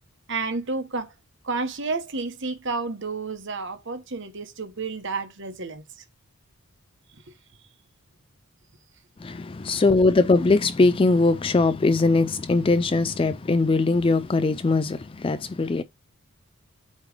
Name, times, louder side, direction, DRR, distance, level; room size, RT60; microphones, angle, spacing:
voice 1, 0.3-1.1 1.4-5.8, right 3 dB, 55° right, 1.2 m, -30 dB
voice 2, 9.2-15.8, left 3 dB, 25° left, 0.3 m, -21 dB
8.4 x 3.3 x 5.0 m
head